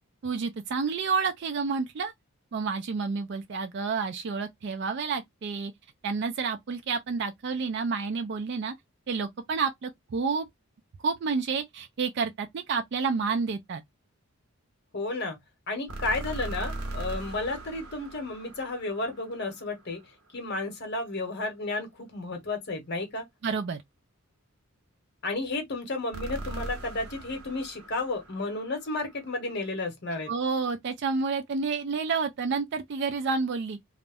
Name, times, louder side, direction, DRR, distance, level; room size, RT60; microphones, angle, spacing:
voice 1, 0.2-2.1 2.5-5.7 6.0-8.7 9.1-10.5 11.0-13.8 23.4-23.8 30.3-33.8, right 5 dB, 50° right, 0.3 m, -29 dB
voice 2, 14.9-15.4 15.7-20.0 20.3-23.3 25.2-30.3, left 2 dB, 50° left, 0.8 m, -32 dB
sound 1, 15.9-20.0 26.1-29.3, right 2 dB, 80° right, 0.9 m, -39 dB
2.4 x 2.0 x 3.3 m
head